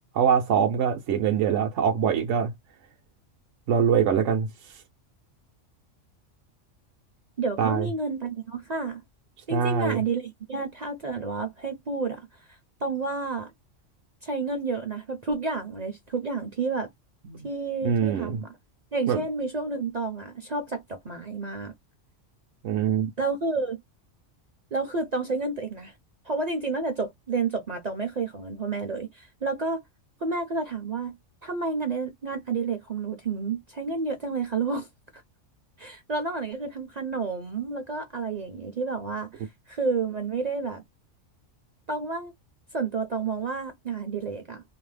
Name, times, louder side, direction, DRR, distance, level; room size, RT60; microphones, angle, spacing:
voice 1, 0.1-2.5 3.7-4.5 7.6-7.9 9.5-10.0 17.2-17.4 17.8-18.4 19.1-19.2 22.6-23.1, right 7 dB, 75° right, 0.9 m, -23 dB
voice 2, 7.4-9.0 9.5-12.3 12.8-13.5 14.2-16.9 17.4-18.5 18.9-21.7 23.2-23.8 24.7-25.9 26.3-29.8 30.2-31.2 31.4-34.9 35.1-35.2 35.8-40.8 41.9-42.3 42.7-44.6, right 4 dB, 50° right, 0.5 m, -30 dB
2.7 x 2.0 x 3.1 m
omnidirectional pair, 1.3 m